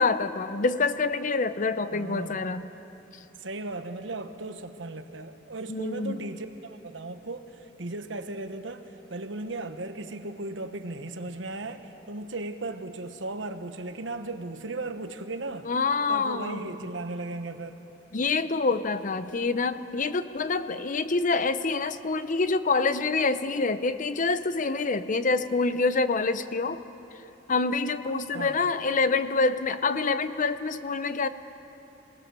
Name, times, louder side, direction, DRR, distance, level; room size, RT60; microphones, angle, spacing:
voice 1, 0.0-2.7 5.7-6.2 15.7-16.6 18.1-26.8 27.5-31.3, left 3 dB, 45° left, 12 dB, 0.7 m, -26 dB
voice 2, 1.9-2.5 3.4-15.7 16.1-17.8 28.3-28.7, right 2 dB, 85° right, 8 dB, 1.2 m, -36 dB
26.0 x 18.5 x 6.8 m, 3.0 s
head